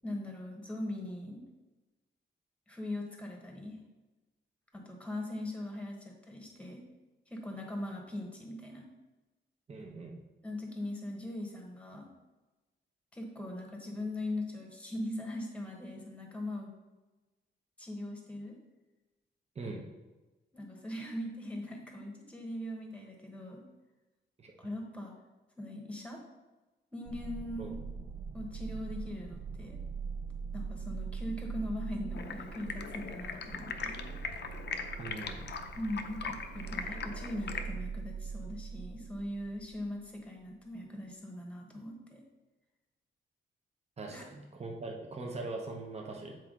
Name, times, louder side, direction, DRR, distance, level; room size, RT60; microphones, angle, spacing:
voice 1, 0.0-1.4 2.7-3.8 4.7-6.8 7.3-8.8 10.4-12.1 13.1-16.7 17.8-18.5 20.5-23.6 24.6-25.1 25.6-26.2 26.9-27.8 28.3-29.8 30.5-34.0 35.8-42.2 44.1-44.2, left 1 dB, 5° left, 1 dB, 1.3 m, -40 dB
voice 2, 9.7-10.2 19.5-19.8 24.4-24.5 27.6-27.8 35.0-35.5 44.0-46.4, right 3 dB, 30° right, 1 dB, 1.0 m, -41 dB
sound 1, 27.1-39.9, right 5 dB, 55° right, 0.4 m, -42 dB
Stream, 32.1-37.6, left 5 dB, 60° left, 0.6 m, -40 dB
7.9 x 4.5 x 3.8 m, 1.1 s
wide cardioid pair, 145°, 20 cm